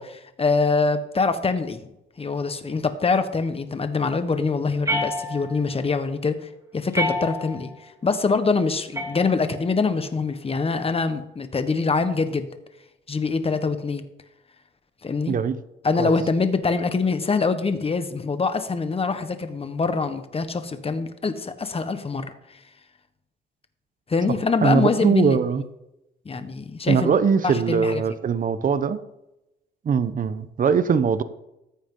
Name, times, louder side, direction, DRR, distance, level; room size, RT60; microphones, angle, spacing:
voice 1, 0.0-1.8 2.2-6.4 6.7-12.5 13.1-14.0 15.0-15.4 15.8-22.3 24.1-25.4 26.2-27.1 27.4-28.0, left 4 dB, 30° left, 9 dB, 1.3 m, -24 dB
sound 1, 4.8-5.7 6.9-7.7 8.9-9.8, equal, 15° right, 3.4 m, -28 dB
voice 2, 24.6-25.6 26.9-29.0 29.8-31.2, right 6 dB, 45° right, 13 dB, 0.9 m, -21 dB
14.5 x 8.8 x 3.9 m, 0.89 s
cardioid pair, 90°, 20 cm